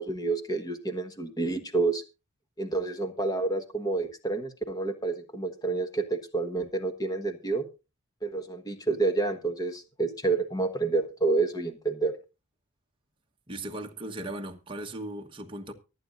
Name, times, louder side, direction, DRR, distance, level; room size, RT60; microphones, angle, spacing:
voice 1, 0.0-2.0 2.6-7.6 8.2-12.1, right 3 dB, 15° left, 1.4 m, -29 dB
voice 2, 13.5-15.7, right 1 dB, 25° right, 1.2 m, -37 dB
24.0 x 9.0 x 2.5 m
head